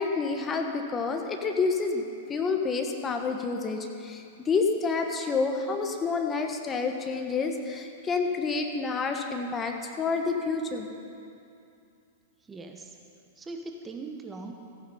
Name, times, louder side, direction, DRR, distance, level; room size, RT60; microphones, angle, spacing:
voice 1, 0.0-2.0 2.3-4.2 4.5-10.9, left 4 dB, 20° left, 4 dB, 1.3 m, -28 dB
voice 2, 12.5-12.9 13.4-14.5, right 3 dB, 15° right, 3 dB, 1.0 m, -40 dB
15.0 x 9.7 x 5.5 m, 2.6 s
hypercardioid pair, 105°, 0 cm